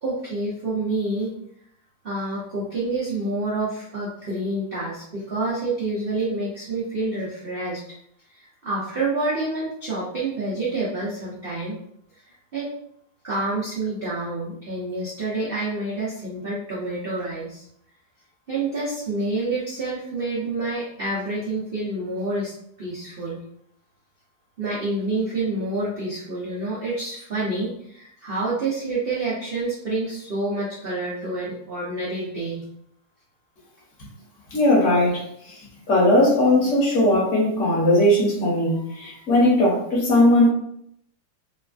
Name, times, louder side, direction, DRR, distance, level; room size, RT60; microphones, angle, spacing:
voice 1, 0.0-1.3 2.0-7.8 8.3-11.8 12.1-12.7 13.2-17.6 18.5-22.5 22.8-23.4 24.6-32.6, right 2 dB, 80° right, -7 dB, 0.5 m, -28 dB
voice 2, 34.5-35.6 35.9-40.5, left 1 dB, 50° left, -4 dB, 1.2 m, -19 dB
3.1 x 2.3 x 2.4 m, 0.72 s
omnidirectional pair, 2.0 m